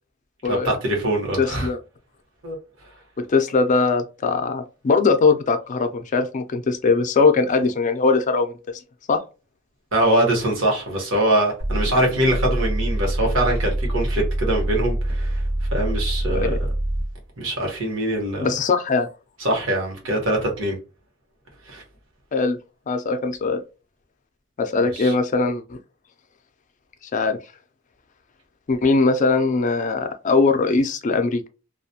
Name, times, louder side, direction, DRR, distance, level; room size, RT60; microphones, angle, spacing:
voice 1, 0.5-1.7 2.4-2.6 9.9-15.4 15.7-16.7 17.4-18.5 19.4-20.8 21.7-21.8 24.8-25.1, right 1 dB, 75° right, 1.1 m, -23 dB
voice 2, 1.4-1.8 3.2-8.5 9.1-9.2 16.3-16.6 18.4-19.1 22.3-22.6 22.9-23.6 24.6-25.8 27.1-27.4 28.7-31.4, left 4 dB, 40° left, 0.4 m, -20 dB
sound 1, 11.6-17.2, right 1 dB, 90° right, 0.7 m, -25 dB
2.3 x 2.2 x 2.7 m
head